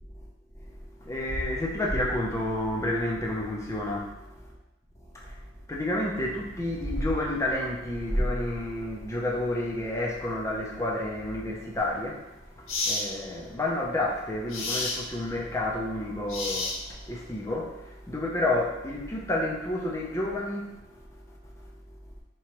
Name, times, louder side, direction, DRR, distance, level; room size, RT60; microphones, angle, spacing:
voice 1, 1.0-4.5 5.1-5.3 5.7-21.0, left 1 dB, 15° left, -3 dB, 0.6 m, -30 dB
sound 1, 5.1-5.3 5.6-6.0 6.3-8.3 8.8-9.1 9.6-9.7, right 3 dB, 55° right, 0.5 m, -52 dB
sound 2, 11.8-11.9 12.7-13.1 14.5-15.0 16.3-17.1, left 3 dB, 70° left, 0.8 m, -30 dB
4.6 x 3.1 x 3.0 m, 0.92 s
head